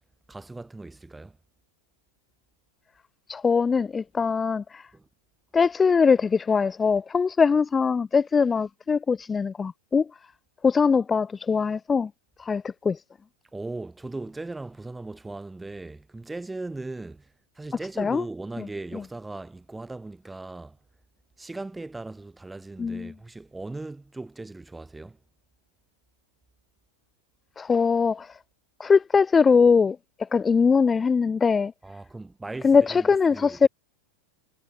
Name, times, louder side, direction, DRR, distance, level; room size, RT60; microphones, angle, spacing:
voice 1, 0.3-1.4 4.9-5.1 13.5-20.8 21.4-25.2 31.8-33.7, right 2 dB, 10° right, 2.5 m, -38 dB
voice 2, 3.3-4.9 5.5-10.1 10.6-12.1 12.4-13.0 18.0-18.2 18.6-18.7 22.8-23.1 27.6-28.4 28.8-31.7 32.6-33.7, left 5 dB, 15° left, 0.5 m, -22 dB
figure-of-eight pair, 90°, 0 cm